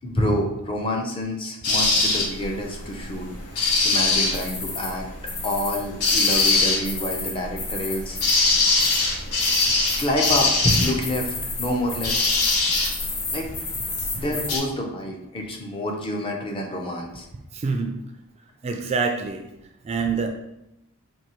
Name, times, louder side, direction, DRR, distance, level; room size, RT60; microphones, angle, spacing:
voice 1, 0.0-3.3 3.5-5.1 5.4-8.2 10.0-12.2 13.3-13.5 14.2-17.3, left 1 dB, 25° left, 1 dB, 0.6 m, -27 dB
sound 1, 1.6-14.6, left 3 dB, 85° left, 0.9 m, -23 dB
voice 2, 17.5-17.9 18.6-19.4 19.8-20.3, right 4 dB, 30° right, 4 dB, 0.3 m, -25 dB
4.4 x 2.7 x 3.0 m, 0.87 s
head